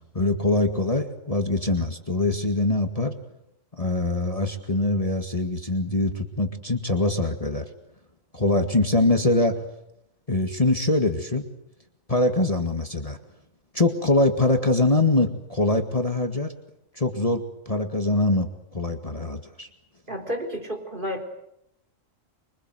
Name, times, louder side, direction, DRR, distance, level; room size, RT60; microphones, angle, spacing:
voice 1, 0.1-3.2 3.8-7.6 8.3-9.6 10.3-11.5 12.1-13.2 13.7-16.5 16.9-19.7, left 2 dB, 25° left, 5 dB, 2.2 m, -23 dB
voice 2, 20.1-21.2, equal, 40° right, 3 dB, 4.2 m, -31 dB
25.5 x 24.5 x 7.9 m, 0.80 s
omnidirectional pair, 1.4 m